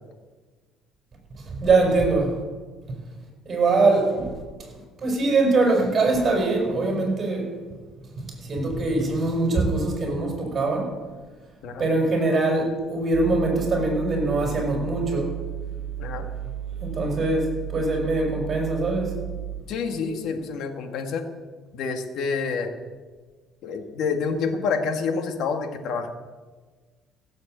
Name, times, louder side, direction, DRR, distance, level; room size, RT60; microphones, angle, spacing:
voice 1, 1.4-2.4 3.5-4.4 5.0-7.5 8.1-10.9 11.8-15.3 16.8-19.1, right 3 dB, 35° right, 1 dB, 5.5 m, -23 dB
sound 1, 13.1-19.6, right 10 dB, 60° right, 1.8 m, -33 dB
voice 2, 16.0-16.3 19.7-21.2 21.7-22.7 23.6-26.1, left 5 dB, 65° left, 6 dB, 1.8 m, -28 dB
16.0 x 7.8 x 7.9 m, 1.4 s
cardioid pair, 110°, 0 cm